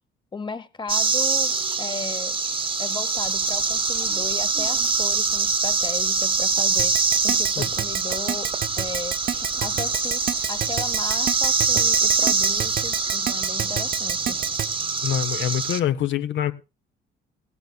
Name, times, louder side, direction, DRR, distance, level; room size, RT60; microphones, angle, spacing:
voice 1, 0.3-2.4 2.8-9.2 9.6-10.2 10.5-14.4, left 4 dB, 25° left, 0.9 m, -36 dB
sound 1, 0.9-15.8, right 4 dB, 25° right, 1.0 m, -24 dB
sound 2, 3.2-13.0, right 11 dB, 90° right, 2.8 m, -48 dB
Keyboard (musical), 6.8-14.7, right 9 dB, 45° right, 0.7 m, -27 dB
voice 2, 15.0-16.5, left 10 dB, 70° left, 0.7 m, -25 dB
17.5 x 14.5 x 2.3 m
cardioid pair, 90°, 20 cm